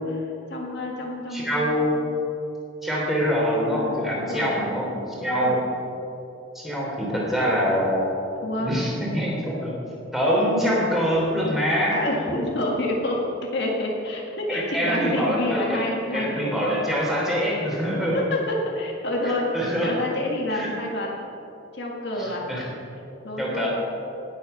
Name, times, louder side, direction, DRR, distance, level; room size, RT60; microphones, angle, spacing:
voice 1, 0.5-1.7 4.1-4.6 5.2-5.6 8.4-8.7 11.9-16.6 18.0-21.1 21.7-22.5 23.2-23.7, left 1 dB, 55° left, -1 dB, 1.9 m, -28 dB
voice 2, 1.3-2.0 2.8-5.7 6.5-8.1 8.6-9.7 10.1-12.0 14.5-15.8 16.1-18.2 19.5-19.9 20.5-20.7 22.2-22.6 23.4-23.7, equal, ahead, -5 dB, 3.5 m, -24 dB
18.5 x 8.5 x 5.7 m, 2.8 s
head